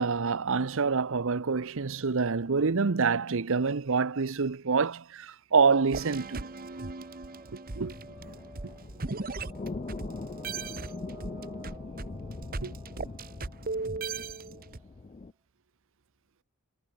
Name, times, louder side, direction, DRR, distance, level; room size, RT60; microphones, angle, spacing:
voice 1, 0.0-6.5 7.5-7.9 12.6-12.7, right 5 dB, 65° right, 0.8 m, -27 dB
sound 1, 5.9-15.2, right 2 dB, 20° right, 2.0 m, -52 dB
sound 2, 5.9-10.1 10.4-14.8, right 3 dB, 40° right, 1.2 m, -37 dB
sound 3, 7.8-15.3, left 3 dB, 30° left, 0.4 m, -42 dB
head